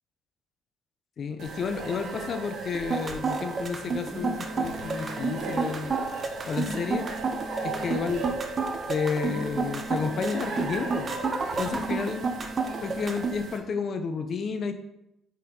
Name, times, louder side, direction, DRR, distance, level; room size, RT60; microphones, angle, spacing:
voice 1, 1.2-6.0 6.5-7.0 7.6-8.3 8.9-11.2 11.6-12.2 12.8-14.7, left 5 dB, 50° left, 8 dB, 0.9 m, -31 dB
sound 1, 1.4-13.6, right 3 dB, 60° right, 1.5 m, -37 dB
sound 2, 2.7-13.3, right 5 dB, 40° right, 0.8 m, -30 dB
sound 3, 4.0-5.6 6.3-8.1 8.9-10.7 11.4-13.1, equal, 15° right, 2.1 m, -40 dB
6.4 x 5.6 x 4.0 m, 0.84 s
hypercardioid pair, 55°, 0 cm